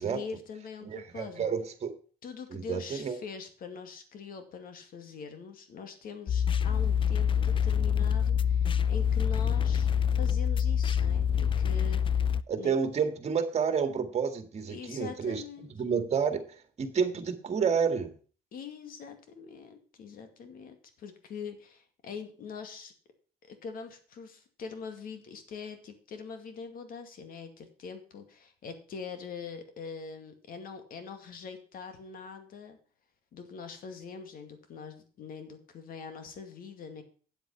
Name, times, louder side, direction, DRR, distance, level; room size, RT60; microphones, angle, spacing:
voice 1, 0.0-1.5 2.2-9.9 10.2-12.3 12.6-12.8 14.7-15.7 18.5-22.9 23.4-32.8 33.3-37.0, left 5 dB, 60° left, 8 dB, 2.3 m, -43 dB
voice 2, 0.8-1.9 2.5-3.2 12.5-15.4 15.7-16.4 16.8-18.1, right 6 dB, 40° right, 9 dB, 2.0 m, -29 dB
sound 1, 6.3-12.4, left 8 dB, 30° left, 0.5 m, -26 dB
9.0 x 8.0 x 5.7 m, 0.41 s
cardioid pair, 110°, 17 cm